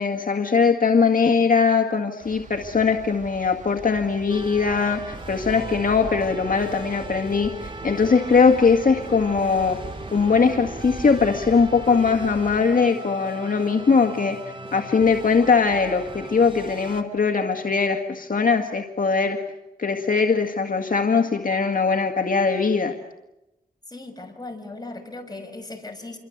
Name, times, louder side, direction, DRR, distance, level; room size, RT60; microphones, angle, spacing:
voice 1, 0.0-9.8 10.1-14.4 14.7-19.4 19.8-22.9, left 5 dB, 60° left, 3 dB, 1.9 m, -21 dB
sound 1, 2.2-12.6, right 3 dB, 50° right, 3.1 m, -41 dB
sound 2, 4.3-17.0, right 2 dB, 35° right, 3.0 m, -38 dB
voice 2, 23.9-26.2, left 2 dB, 25° left, 4 dB, 6.1 m, -37 dB
28.0 x 23.5 x 8.1 m, 0.93 s
cardioid pair, 60°, 16 cm